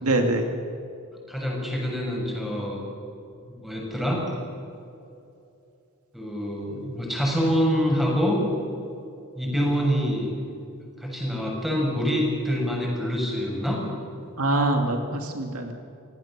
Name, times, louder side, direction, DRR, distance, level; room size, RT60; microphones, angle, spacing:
voice 1, 0.0-0.5 14.4-15.7, right 2 dB, 70° right, 4 dB, 2.4 m, -24 dB
voice 2, 1.3-2.8 3.5-4.3 6.1-8.4 9.4-10.4 11.0-13.9, equal, ahead, -2 dB, 6.9 m, -26 dB
28.5 x 17.5 x 7.5 m, 2.7 s
head